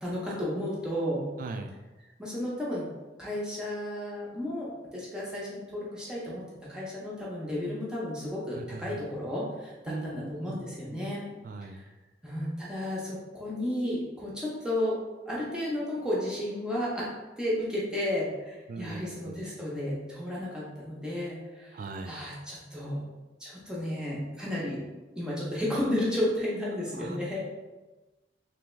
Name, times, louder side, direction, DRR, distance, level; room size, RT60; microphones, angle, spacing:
voice 1, 0.0-1.2 2.2-2.9 3.2-11.3 11.6-11.9 12.2-15.0 15.3-17.1 17.4-23.0 23.4-24.8 25.1-27.4, left 1 dB, 5° right, -7 dB, 0.7 m, -33 dB
voice 2, 1.4-1.7 8.5-9.0 9.9-10.6 10.9-11.0 11.4-11.8 18.7-19.4 21.7-22.2 26.9-27.2, right 3 dB, 50° right, 7 dB, 0.3 m, -39 dB
3.4 x 3.3 x 3.1 m, 1.1 s
head